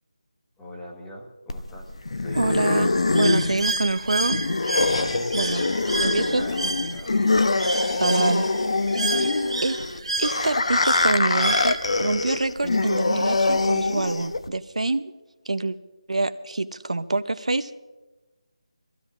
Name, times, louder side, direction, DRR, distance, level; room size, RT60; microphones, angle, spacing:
voice 1, 0.6-2.7 4.9-5.3 5.8-7.1 9.0-9.4, equal, 5° left, -2 dB, 1.1 m, -42 dB
sound 1, 1.5-14.5, left 3 dB, 60° left, 0.8 m, -24 dB
voice 2, 2.3-4.4 5.3-5.6 6.0-6.4 8.0-8.5 9.1-9.2 9.6-9.8 10.2-15.1 15.5-15.8 16.1-17.8, right 2 dB, 90° right, 11 dB, 0.7 m, -25 dB
Bird, 3.1-12.1, right 2 dB, 70° right, 2.6 m, -31 dB
22.5 x 15.5 x 2.5 m, 1.2 s
figure-of-eight pair, 170°, 3 cm